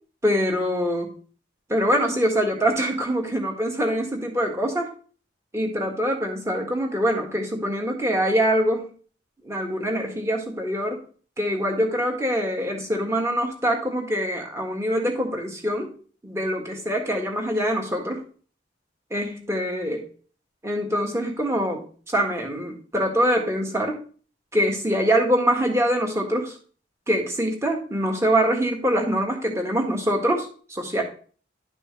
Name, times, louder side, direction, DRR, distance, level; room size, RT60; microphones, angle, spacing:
voice 1, 0.2-1.2 1.7-4.9 5.5-8.9 9.5-11.0 11.4-15.9 16.2-18.2 19.1-20.0 20.6-24.0 24.5-26.6 27.1-31.0, equal, 15° right, 1 dB, 1.7 m, -24 dB
11.5 x 6.0 x 3.2 m, 0.41 s
head